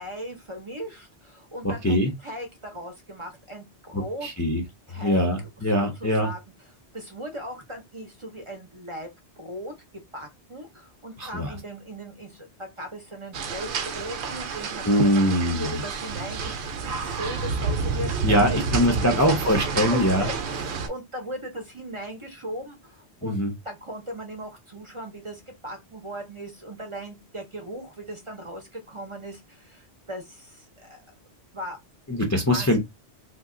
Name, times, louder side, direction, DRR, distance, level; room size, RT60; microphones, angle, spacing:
voice 1, 0.0-4.3 4.9-5.3 5.7-6.4 6.9-9.1 9.4-9.7 10.1-19.4 19.9-23.4 23.6-31.0 31.5-31.8 32.4-32.8, equal, 35° right, 0.6 m, -38 dB
voice 2, 1.6-2.1 3.9-4.6 4.9-6.3 11.2-11.5 14.8-15.8 18.2-20.3 23.2-23.5 32.1-32.8, equal, 25° left, 0.4 m, -23 dB
sound 1, 13.3-20.9, right 5 dB, 80° right, 0.9 m, -29 dB
2.8 x 2.2 x 3.6 m
omnidirectional pair, 1.1 m